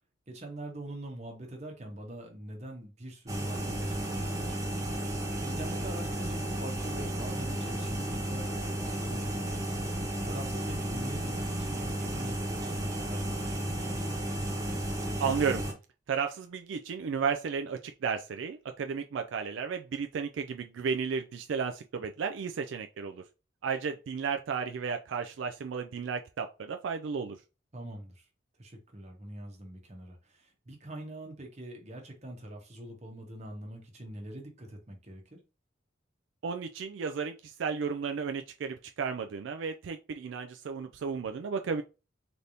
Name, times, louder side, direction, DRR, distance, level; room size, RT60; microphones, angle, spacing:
voice 1, 0.3-4.7 5.4-9.8 10.3-13.9 27.7-28.3 28.6-35.4, right 1 dB, 35° right, 1.2 m, -44 dB
sound 1, 3.3-15.7, right 1 dB, 20° right, 0.9 m, -33 dB
voice 2, 15.2-15.7 16.1-23.2 23.6-27.4 36.4-41.8, right 6 dB, 75° right, 0.4 m, -33 dB
4.0 x 3.3 x 2.7 m
head